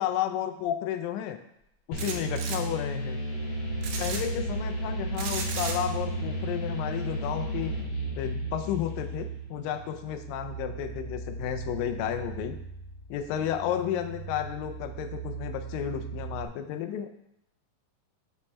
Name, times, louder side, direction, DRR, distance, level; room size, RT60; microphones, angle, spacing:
voice 1, 0.0-1.4 1.9-3.2 4.0-7.7 8.2-12.5 13.1-17.2, left 10 dB, 85° left, 8 dB, 2.3 m, -32 dB
sound 1, 1.9-9.6, equal, 65° left, 2.7 m, -34 dB
sound 2, 2.0-2.6 3.8-4.2 5.2-5.8, right 5 dB, 85° right, 1.5 m, -34 dB
sound 3, 2.1-16.5, right 6 dB, 65° right, 1.8 m, -39 dB
7.2 x 3.3 x 4.2 m, 0.79 s
omnidirectional pair, 4.0 m